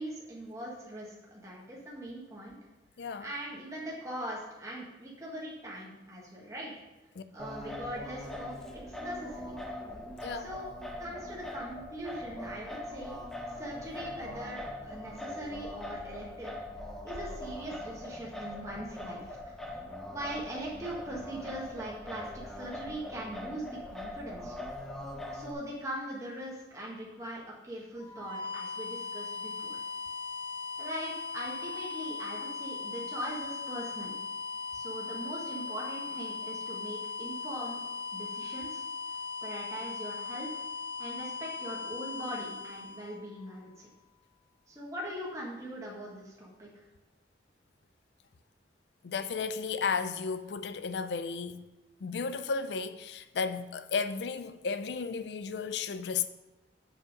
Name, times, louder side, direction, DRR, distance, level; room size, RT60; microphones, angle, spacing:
voice 1, 0.0-2.6 3.2-6.7 7.3-9.5 10.4-10.6 11.0-13.2 13.6-16.6 17.0-19.6 20.1-24.6 25.3-29.8 30.8-34.1 34.7-37.8 38.1-38.8 39.4-40.6 41.0-43.9 44.7-46.7, right 1 dB, 15° right, 1.5 m, -41 dB
voice 2, 3.0-3.3 7.2-7.3 10.2-10.6 49.0-51.6 52.0-56.3, left 5 dB, 65° left, 0.4 m, -34 dB
Singing, 7.4-25.5, left 1 dB, ahead, 0.7 m, -41 dB
sound 1, 28.0-43.8, left 4 dB, 30° left, 1.1 m, -39 dB
7.4 x 5.4 x 5.2 m
head